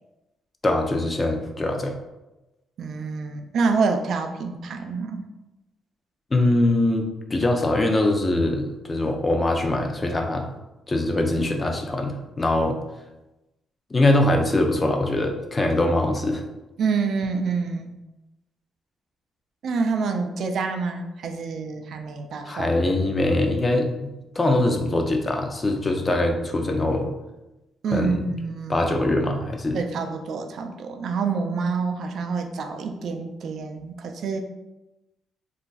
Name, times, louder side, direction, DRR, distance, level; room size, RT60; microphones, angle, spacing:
voice 1, 0.6-1.9 6.3-10.5 10.9-12.8 13.9-16.4 22.5-27.1 27.9-28.2 28.7-29.8, left 2 dB, 25° left, 3 dB, 0.5 m, -22 dB
voice 2, 2.8-5.3 16.8-18.0 19.6-22.8 27.8-28.9 29.7-34.4, right 4 dB, 65° right, 5 dB, 0.4 m, -27 dB
2.4 x 2.2 x 3.9 m, 1.0 s
cardioid pair, 90°, 0 cm